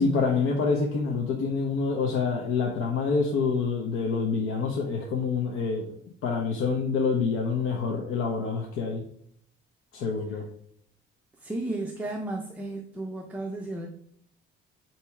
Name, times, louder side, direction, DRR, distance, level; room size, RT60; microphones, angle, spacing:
voice 1, 0.0-5.9 6.2-9.0 9.9-10.4, left 4 dB, 75° left, 1 dB, 0.9 m, -27 dB
voice 2, 11.4-13.9, right 1 dB, 5° right, 1 dB, 0.5 m, -33 dB
8.7 x 3.0 x 4.7 m, 0.67 s
cardioid pair, 175°, 21 cm